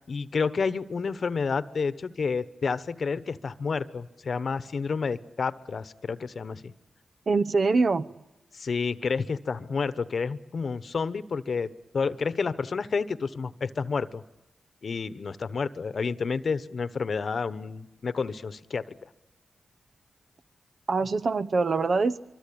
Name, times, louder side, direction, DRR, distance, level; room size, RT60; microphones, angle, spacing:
voice 1, 0.1-6.7 8.5-14.2 14.8-18.9, left 5 dB, 65° left, 14 dB, 1.1 m, -30 dB
voice 2, 7.3-8.1 20.9-22.2, right 4 dB, 60° right, 11 dB, 0.9 m, -24 dB
24.5 x 24.5 x 8.7 m, 0.99 s
cardioid pair, 55°, 0 cm